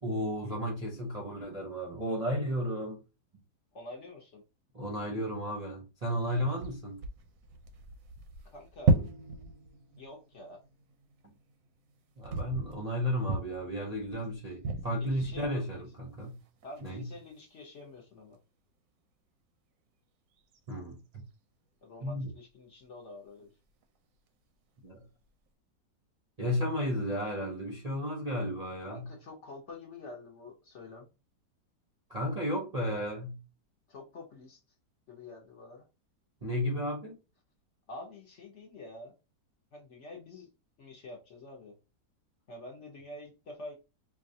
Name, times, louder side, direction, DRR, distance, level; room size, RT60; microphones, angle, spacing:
voice 1, 0.0-3.0 4.7-7.0 12.2-16.4 16.8-17.0 20.7-21.2 22.0-22.3 24.8-25.1 26.4-29.1 32.1-33.4 36.4-37.2, equal, 35° right, 0.6 m, -33 dB
voice 2, 3.7-4.4 8.5-9.0 10.0-10.6 15.0-15.8 16.6-18.4 21.8-23.5 28.8-31.1 33.9-34.6 35.1-35.8 37.9-39.1 39.7-40.5 40.8-41.7 42.5-43.8, left 2 dB, 55° left, 0.9 m, -47 dB
sound 1, 6.5-15.8 16.4-17.0 17.4-17.5 20.3-21.2 23.7-24.0 25.2-25.3, right 3 dB, 65° right, 0.9 m, -35 dB
4.7 x 2.3 x 2.6 m
omnidirectional pair, 1.8 m